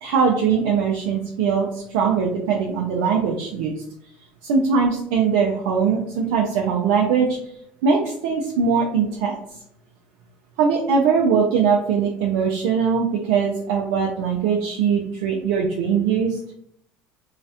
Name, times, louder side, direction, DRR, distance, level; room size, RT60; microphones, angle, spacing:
voice 1, 0.0-3.7 4.4-7.4 7.8-9.4 10.6-16.4, right 6 dB, 80° right, 0 dB, 0.3 m, -21 dB
2.3 x 2.1 x 2.7 m, 0.71 s
supercardioid pair, 85°, 4 cm